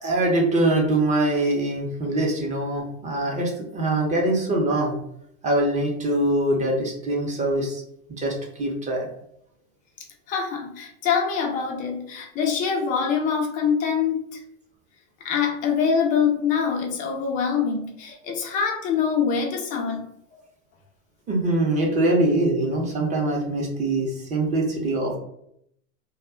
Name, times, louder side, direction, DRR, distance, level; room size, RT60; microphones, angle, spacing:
voice 1, 0.0-5.0 5.4-7.8 8.1-9.1 21.3-25.2, right 1 dB, 15° right, 0 dB, 0.6 m, -23 dB
voice 2, 10.3-14.4 15.2-20.1, left 6 dB, 20° left, 2 dB, 0.3 m, -24 dB
2.2 x 2.1 x 3.5 m, 0.73 s
hypercardioid pair, 115°, 42 cm